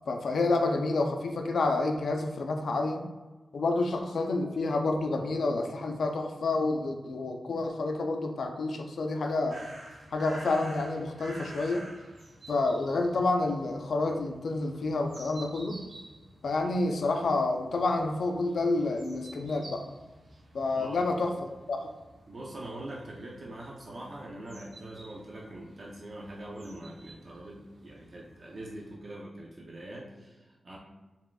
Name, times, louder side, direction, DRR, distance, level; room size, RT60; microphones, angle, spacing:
voice 1, 0.0-3.1 3.5-9.6 10.1-11.8 12.5-15.8 16.4-19.8 20.5-21.3 21.7-21.9, left 3 dB, 75° left, 4 dB, 0.5 m, -29 dB
sound 1, 9.5-29.0, right 1 dB, 80° right, 1.3 m, -51 dB
voice 2, 20.7-21.1 22.3-30.8, right 1 dB, 45° right, -3 dB, 0.6 m, -43 dB
4.8 x 3.4 x 2.3 m, 1.2 s
wide cardioid pair, 140°, 0 cm